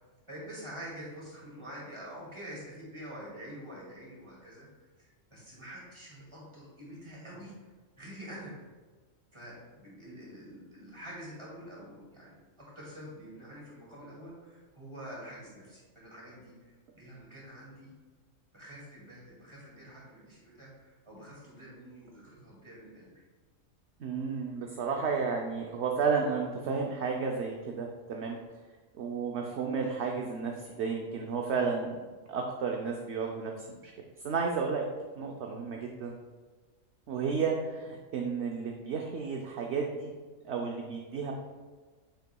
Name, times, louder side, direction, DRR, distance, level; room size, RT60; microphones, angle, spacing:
voice 1, 0.3-7.5 8.0-8.5 9.3-17.9 18.5-23.2, equal, 20° right, -5 dB, 2.3 m, -47 dB
voice 2, 24.0-28.4 29.0-32.0 32.3-33.9 34.2-34.8 35.2-36.1 37.1-40.1 40.4-41.3, right 5 dB, 60° right, 1 dB, 0.9 m, -32 dB
8.1 x 6.7 x 2.3 m, 1.4 s
omnidirectional pair, 1.4 m